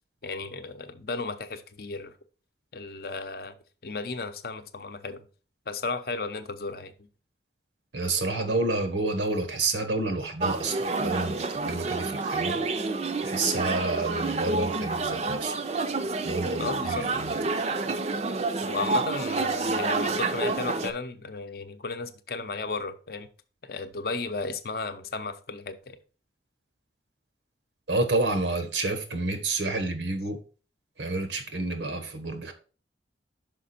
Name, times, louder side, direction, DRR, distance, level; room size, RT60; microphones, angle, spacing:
voice 1, 0.2-2.1 2.7-3.5 3.8-5.2 5.7-6.9 16.6-17.1 18.6-23.3 23.6-26.0, left 3 dB, 60° left, 0.6 m, -34 dB
voice 2, 7.9-12.6 13.2-15.6 16.2-17.4 27.9-30.4 31.0-32.5, right 2 dB, 90° right, 1.2 m, -29 dB
sound 1, 10.4-20.9, right 3 dB, 35° right, 0.5 m, -29 dB
5.9 x 5.0 x 4.2 m
head